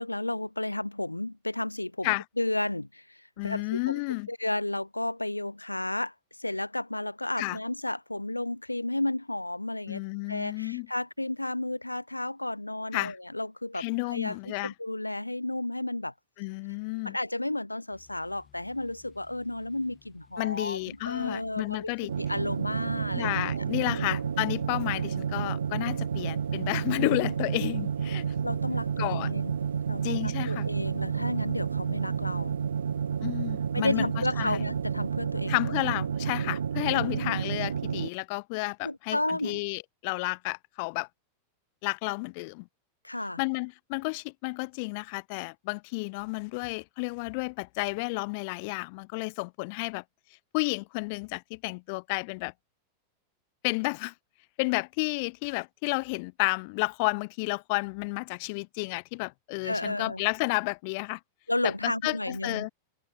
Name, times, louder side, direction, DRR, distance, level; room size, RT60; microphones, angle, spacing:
voice 1, 0.0-4.0 4.3-10.0 10.3-16.1 17.0-21.9 22.2-23.6 23.9-24.2 28.4-29.6 29.9-32.6 33.7-35.5 36.9-37.1 38.8-39.6 43.0-43.4 59.6-60.2 61.5-62.7, left 1 dB, 85° left, 0.5 m, -32 dB
voice 2, 3.4-4.3 7.4-7.6 9.9-10.9 12.9-13.2 13.7-14.7 16.4-17.2 20.4-22.1 23.2-28.2 29.0-29.3 30.0-30.7 33.2-34.1 34.4-34.6 35.5-41.1 41.8-42.7 43.4-50.0 50.5-52.5 53.6-54.1 54.6-61.2 61.8-62.7, left 30 dB, 45° left, 0.7 m, -31 dB
sound 1, 17.9-35.2, left 11 dB, 30° left, 7.5 m, -61 dB
sound 2, 22.1-38.1, right 7 dB, 70° right, 0.8 m, -30 dB
figure-of-eight pair, 90°, 0 cm